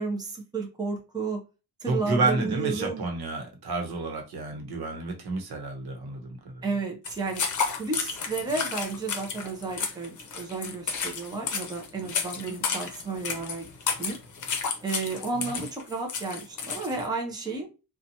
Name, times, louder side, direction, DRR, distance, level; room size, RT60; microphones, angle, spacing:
voice 1, 0.0-1.4 1.8-3.0 6.6-7.4 7.7-13.7 14.0-14.2 14.8-17.7, right 4 dB, 10° right, 0.5 m, -32 dB
voice 2, 1.9-6.6 15.5-15.6, right 3 dB, 85° right, 0.9 m, -30 dB
sound 1, 7.0-17.1, left 5 dB, 50° left, 0.7 m, -32 dB
2.8 x 2.2 x 2.6 m
wide cardioid pair, 165°, 37 cm